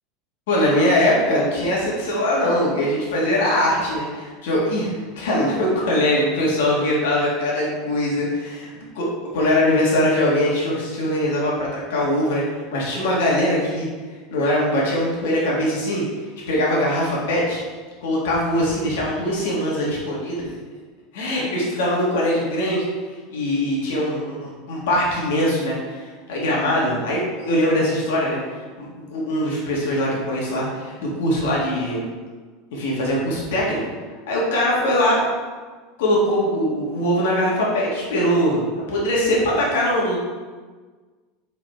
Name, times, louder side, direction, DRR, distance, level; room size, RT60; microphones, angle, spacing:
voice 1, 0.5-8.7 9.0-9.1 9.3-12.4 12.7-13.9 14.3-16.0 16.5-17.6 18.0-20.5 21.1-22.9 23.3-28.4 28.8-32.0 32.7-33.8 34.3-35.2 36.0-38.6 38.9-40.2, left 1 dB, 80° left, -4 dB, 1.9 m, -21 dB
5.7 x 4.1 x 4.5 m, 1.4 s
supercardioid pair, 165°, 0 cm